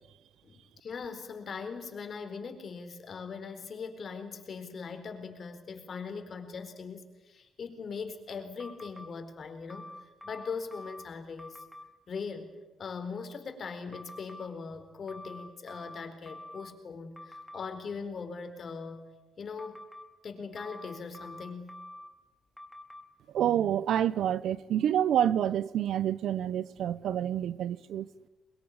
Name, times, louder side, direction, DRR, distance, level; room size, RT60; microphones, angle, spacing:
voice 1, 0.4-11.6 12.1-12.5 12.8-19.1 19.4-19.9 20.2-21.8, left 5 dB, 45° left, 4.4 m, -40 dB
sound 1, 8.6-9.1 9.7-11.1 11.4-11.9 13.9-14.5 15.1-16.7 17.2-17.6 19.6-20.1 20.6-22.1 22.6-23.0, left 1 dB, 5° left, 2.9 m, -46 dB
voice 2, 23.3-28.1, right 10 dB, 70° right, 0.9 m, -28 dB
23.0 x 21.5 x 10.0 m
cardioid pair, 95°, 0 cm